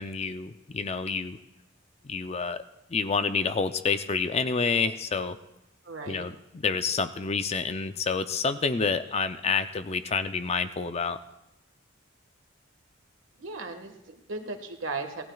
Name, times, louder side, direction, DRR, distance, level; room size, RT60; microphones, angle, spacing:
voice 1, 0.0-1.4 2.0-2.6 2.9-5.4 6.1-11.2, left 5 dB, 30° left, 10 dB, 0.5 m, -28 dB
voice 2, 5.8-6.3 13.4-15.3, right 3 dB, 70° right, 5 dB, 1.6 m, -37 dB
24.5 x 17.5 x 2.4 m, 0.91 s
head